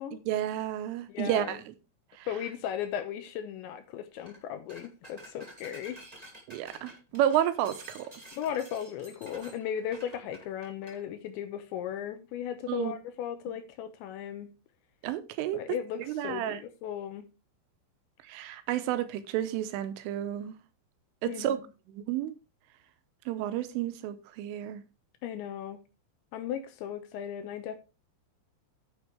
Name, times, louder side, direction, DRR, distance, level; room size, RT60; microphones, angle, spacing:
voice 1, 0.3-1.6 2.2-2.3 6.5-8.1 12.7-12.9 15.0-15.6 16.1-16.6 18.3-20.6 21.2-21.6 21.9-22.4 23.3-24.8, right 11 dB, 85° right, 3.4 m, -31 dB
voice 2, 1.1-1.6 2.3-6.0 8.3-14.5 15.5-17.3 21.2-21.6 25.2-25.8 26.3-27.8, left 9 dB, 80° left, 3.0 m, -36 dB
sound 1, 4.2-4.4 4.7-11.0, right 1 dB, 25° right, 0.8 m, -50 dB
9.7 x 8.3 x 3.4 m
omnidirectional pair, 5.7 m